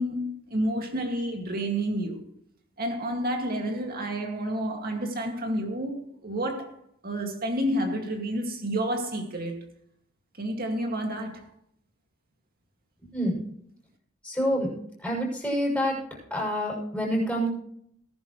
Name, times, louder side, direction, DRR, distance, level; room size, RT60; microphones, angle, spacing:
voice 1, 0.0-2.2 2.8-6.7 7.0-9.6 10.4-11.5, right 1 dB, 45° right, 2.1 m, -30 dB
voice 2, 13.0-13.5 14.2-14.7 15.0-16.0 16.3-17.5, equal, 5° left, 6.7 m, -27 dB
18.5 x 11.0 x 3.2 m
head